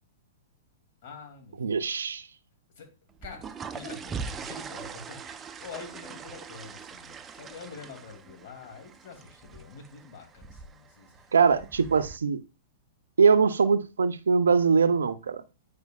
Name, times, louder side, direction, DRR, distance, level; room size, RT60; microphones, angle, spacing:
voice 1, 1.0-1.8 2.8-2.9 3.2-11.2, left 5 dB, 55° left, 2.5 m, -46 dB
voice 2, 1.6-2.3 11.3-12.4 13.2-15.4, right 5 dB, 80° right, 0.5 m, -22 dB
sound 1, 3.1-12.2, right 5 dB, 20° right, 0.5 m, -42 dB
9.3 x 4.9 x 2.4 m
hypercardioid pair, 115°, 0 cm